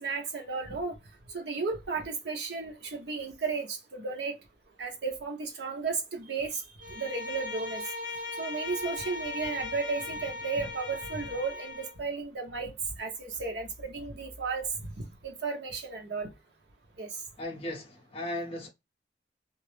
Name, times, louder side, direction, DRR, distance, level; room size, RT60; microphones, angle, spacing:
voice 1, 0.0-1.0 1.3-4.3 4.8-6.6 6.9-7.8 8.4-12.7 13.0-16.3 17.0-17.1, right 4 dB, 60° right, 0.8 m, -34 dB
Bowed string instrument, 6.8-12.0, left 3 dB, 85° right, 1.0 m, -38 dB
voice 2, 17.4-18.7, left 1 dB, 30° left, 0.6 m, -36 dB
2.4 x 2.0 x 2.9 m
head